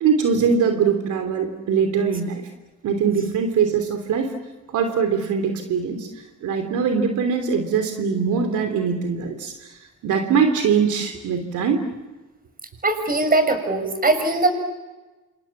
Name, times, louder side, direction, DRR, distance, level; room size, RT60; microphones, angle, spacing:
voice 1, 0.0-2.4 2.8-4.3 4.7-11.8, right 6 dB, 75° right, 6 dB, 3.2 m, -22 dB
voice 2, 12.8-14.5, right 2 dB, 30° right, 7 dB, 6.7 m, -20 dB
29.0 x 27.0 x 7.4 m, 1.2 s
cardioid pair, 90°, 30 cm